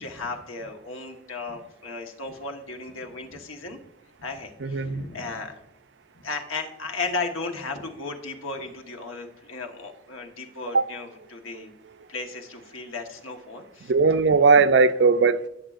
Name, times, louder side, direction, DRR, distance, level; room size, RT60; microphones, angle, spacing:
voice 1, 0.0-3.8 4.2-5.5 6.1-11.7 12.1-13.9, left 3 dB, 85° left, 1.3 m, -35 dB
voice 2, 4.6-5.0 10.7-10.9 13.9-15.5, right 4 dB, 60° right, 0.4 m, -19 dB
18.0 x 7.3 x 2.5 m
head